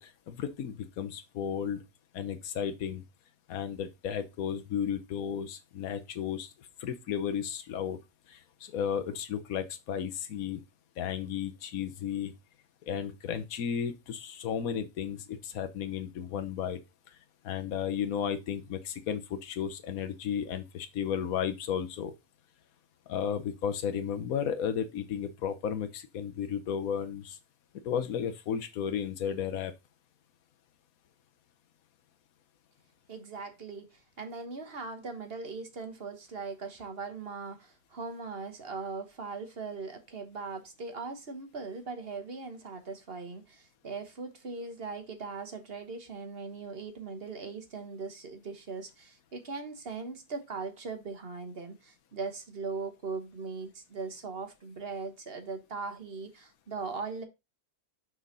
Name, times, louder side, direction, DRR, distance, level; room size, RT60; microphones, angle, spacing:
voice 1, 0.0-1.8 2.1-3.0 3.5-6.5 6.8-8.0 8.3-10.6 11.0-12.3 12.9-16.8 17.4-22.1 23.1-27.4 27.8-29.7, left 8 dB, 75° left, 1.3 m, -33 dB
voice 2, 33.1-57.2, right 4 dB, 45° right, 1.4 m, -40 dB
6.2 x 4.8 x 4.0 m
omnidirectional pair, 1.5 m